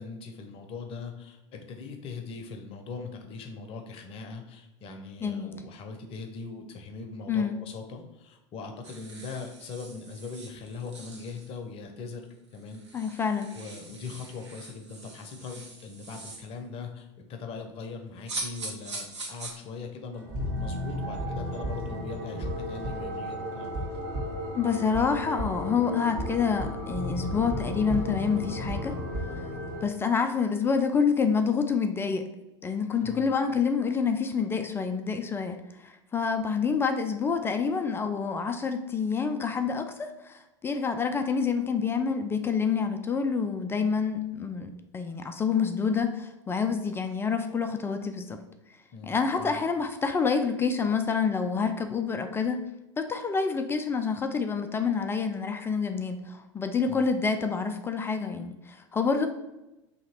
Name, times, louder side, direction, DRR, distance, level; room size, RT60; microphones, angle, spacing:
voice 1, 0.0-12.3 12.5-20.3 20.5-23.9 33.0-33.3 48.9-49.6 56.9-57.0, left 4 dB, 40° left, 4 dB, 0.7 m, -41 dB
voice 2, 5.2-5.5 7.3-7.6 12.9-13.5 24.5-29.0 29.8-32.2 32.6-35.6 35.8-48.4 49.0-52.6 53.0-59.3, left 5 dB, 15° left, 6 dB, 0.3 m, -27 dB
sound 1, 8.8-11.6 12.2-12.3 12.5-16.5 18.3-19.5, right 2 dB, 75° right, 0.9 m, -42 dB
sound 2, 20.1-29.9, equal, 50° right, 1.3 m, -33 dB
2.9 x 2.9 x 4.2 m, 0.94 s
figure-of-eight pair, 80°, 15 cm